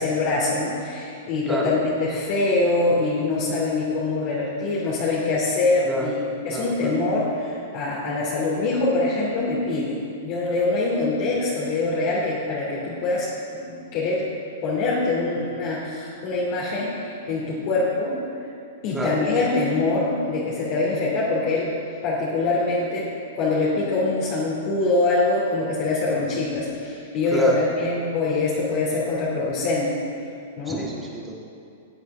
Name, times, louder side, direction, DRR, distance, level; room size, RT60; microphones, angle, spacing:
voice 1, 0.0-6.2 6.4-9.9 10.2-14.3 14.6-18.1 18.8-21.7 22.0-23.1 23.4-30.0 30.6-30.8, left 3 dB, 50° left, -7 dB, 2.8 m, -24 dB
voice 2, 5.8-6.2 6.5-7.0 18.9-19.2 26.1-26.4 27.3-27.6 30.7-31.4, right 2 dB, 10° right, -3 dB, 2.4 m, -30 dB
18.5 x 8.0 x 3.7 m, 2.5 s
hypercardioid pair, 115°, 0 cm